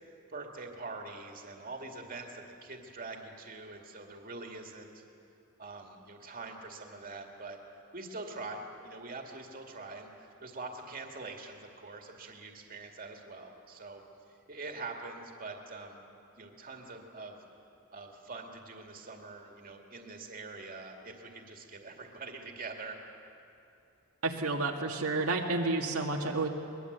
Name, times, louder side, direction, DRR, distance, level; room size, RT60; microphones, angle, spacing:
voice 1, 0.0-5.0 5.6-7.6 7.9-14.0 14.3-17.4 17.9-23.0, right 3 dB, 40° right, 2 dB, 2.3 m, -44 dB
voice 2, 24.2-26.5, right 3 dB, 90° right, 0 dB, 2.0 m, -30 dB
23.0 x 21.0 x 8.1 m, 2.8 s
head